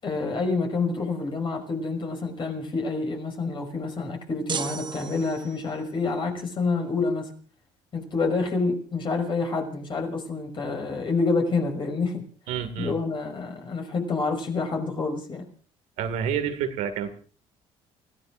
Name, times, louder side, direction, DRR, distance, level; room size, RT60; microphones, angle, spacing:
voice 1, 0.0-7.3 7.9-12.2 12.8-15.4, left 3 dB, 40° left, 5.5 m, -28 dB
sound 1, 4.5-5.8, right 7 dB, 35° right, 0.9 m, -34 dB
voice 2, 12.5-12.9 16.0-17.1, right 8 dB, 80° right, 2.1 m, -28 dB
30.0 x 15.5 x 2.6 m
cardioid pair, 95°, 13 cm